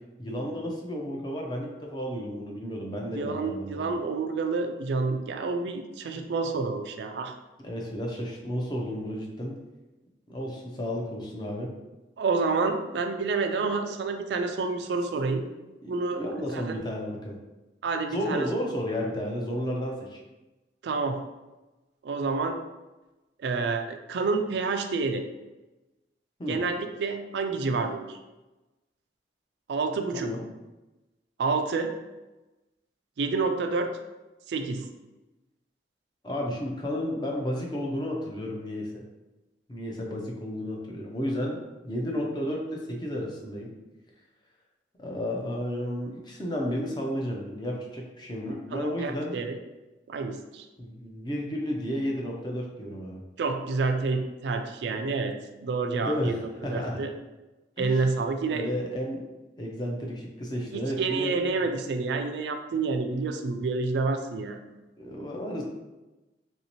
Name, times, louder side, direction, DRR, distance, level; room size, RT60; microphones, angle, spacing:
voice 1, 0.2-3.9 7.6-9.6 10.3-11.7 15.8-17.4 18.1-20.2 26.4-26.6 30.1-30.4 36.2-39.0 39.7-43.7 45.0-49.4 50.8-53.2 56.0-57.0 57.8-58.0 58.5-59.2 59.6-61.4 65.0-65.6, equal, 25° left, -1 dB, 0.5 m, -32 dB
voice 2, 3.1-7.3 12.2-15.5 15.9-16.8 17.8-18.5 20.8-21.2 22.0-22.6 23.4-25.3 26.5-28.2 29.7-30.3 31.4-31.9 33.2-33.9 34.5-34.9 48.7-49.6 50.1-50.7 53.4-55.4 55.6-57.1 57.8-58.8 60.7-64.6, right 4 dB, 75° right, 6 dB, 0.3 m, -28 dB
3.0 x 2.7 x 2.9 m, 1.1 s
head